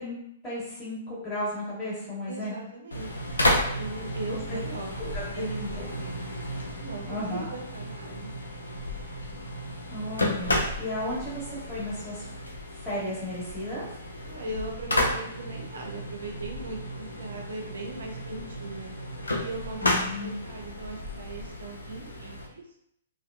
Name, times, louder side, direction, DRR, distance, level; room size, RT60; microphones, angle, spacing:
voice 1, 0.0-2.6 4.3-4.4 5.1-5.2 5.6-5.7 7.1-7.4 9.9-12.3 12.7-13.9 19.8-20.3, left 1 dB, 20° left, -8 dB, 1.5 m, -34 dB
voice 2, 2.3-3.1 3.8-6.3 6.8-8.4 14.2-18.9 19.4-22.7, right 2 dB, 75° right, 2 dB, 0.5 m, -39 dB
sound 1, 2.9-22.5, left 1 dB, 90° left, 0.5 m, -32 dB
2.7 x 2.2 x 2.2 m, 0.73 s
hypercardioid pair, 125°, 0 cm